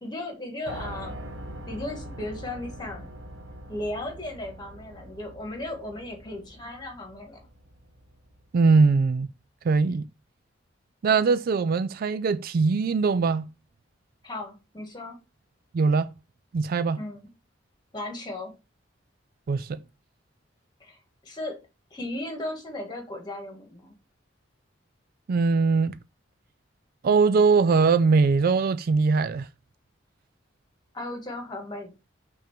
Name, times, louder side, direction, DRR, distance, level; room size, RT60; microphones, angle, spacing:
voice 1, 0.0-1.1 1.7-3.1 3.7-7.5 14.2-15.2 17.0-17.3 17.9-18.5 20.8-21.6 21.9-23.9 30.9-31.9, left 1 dB, 25° left, 1.8 m, -36 dB
Piano, 0.7-8.7, right 1 dB, 70° right, 1.1 m, -43 dB
voice 2, 8.5-9.3 9.6-10.1 11.0-13.5 15.7-16.1 16.5-17.0 19.5-19.8 25.3-25.9 27.0-29.5, right 4 dB, 50° right, 0.3 m, -21 dB
5.9 x 3.7 x 4.4 m
head